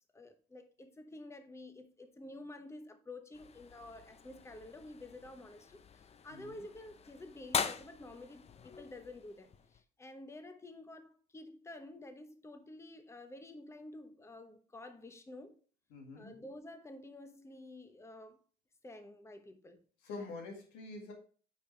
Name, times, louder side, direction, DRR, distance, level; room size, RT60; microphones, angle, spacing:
voice 1, 0.1-15.6 16.1-18.4 18.8-19.8, left 2 dB, 15° left, 1.0 m, -50 dB
sound 1, 3.3-9.8, left 6 dB, 40° left, 0.6 m, -43 dB
voice 2, 6.3-6.6 15.9-16.4 20.0-21.1, left 3 dB, 90° left, 2.0 m, -46 dB
8.7 x 5.0 x 3.3 m
supercardioid pair, 75°, 17 cm